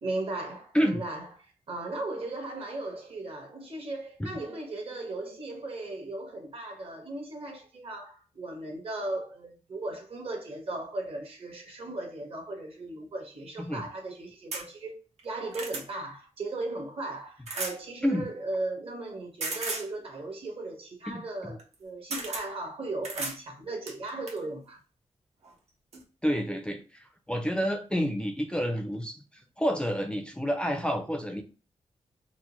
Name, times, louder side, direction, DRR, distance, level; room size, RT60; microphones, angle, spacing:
voice 1, 0.0-15.0 15.2-24.8, right 2 dB, 60° right, 1.3 m, -37 dB
voice 2, 0.7-1.1 4.2-4.3 13.6-13.8 18.0-18.3 21.1-21.2 26.2-31.4, equal, 10° left, 0.4 m, -29 dB
sound 1, 14.5-14.7 15.2-15.9 17.5-17.8 19.4-19.9 21.6-21.7 22.1-22.5 23.0-23.4 23.9-24.4 25.4-25.5 25.9-26.0, right 3 dB, 80° right, 0.9 m, -35 dB
4.4 x 2.0 x 2.9 m
wide cardioid pair, 115°, 11 cm